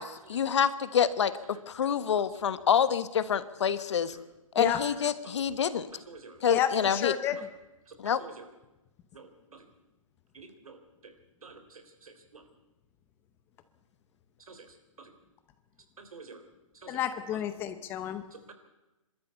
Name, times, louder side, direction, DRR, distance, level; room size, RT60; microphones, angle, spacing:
voice 1, 0.0-4.2 4.5-5.9 6.4-7.1 8.0-8.2, left 8 dB, 55° left, 14 dB, 1.3 m, -27 dB
voice 2, 5.7-6.4 7.9-8.5 9.1-9.7 10.3-11.2 11.4-12.4 14.4-15.1 16.0-16.4 16.7-17.0 18.3-18.5, right 4 dB, 90° right, 8 dB, 3.7 m, -50 dB
voice 3, 6.5-7.5 16.9-18.2, left 10 dB, 10° left, 11 dB, 0.7 m, -30 dB
25.5 x 13.0 x 8.3 m, 1.0 s
hypercardioid pair, 165°, 18 cm